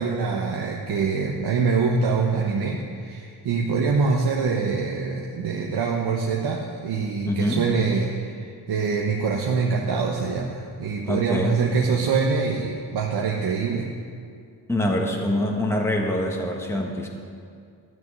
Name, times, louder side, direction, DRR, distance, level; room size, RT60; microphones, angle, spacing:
voice 1, 0.0-13.9, right 5 dB, 70° right, -1 dB, 1.2 m, -24 dB
voice 2, 7.2-7.7 11.0-11.5 14.7-17.1, left 1 dB, 5° left, 0 dB, 1.5 m, -24 dB
12.5 x 6.4 x 9.2 m, 2.3 s
cardioid pair, 90°, 41 cm